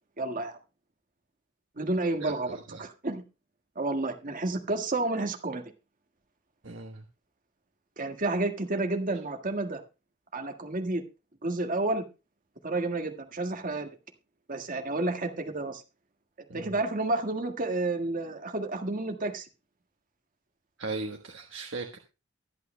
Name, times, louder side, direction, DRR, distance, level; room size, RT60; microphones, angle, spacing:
voice 1, 0.2-0.6 1.7-2.5 2.8-3.2 3.7-5.6 8.0-9.8 10.3-11.0 11.4-12.0 12.6-13.9 14.5-15.8 16.5-19.5, right 2 dB, 40° right, 4 dB, 1.6 m, -30 dB
voice 2, 2.2-2.8 6.6-7.1 16.5-16.7 20.8-22.0, right 3 dB, 65° right, 3 dB, 1.2 m, -38 dB
23.0 x 8.6 x 2.2 m, 0.30 s
head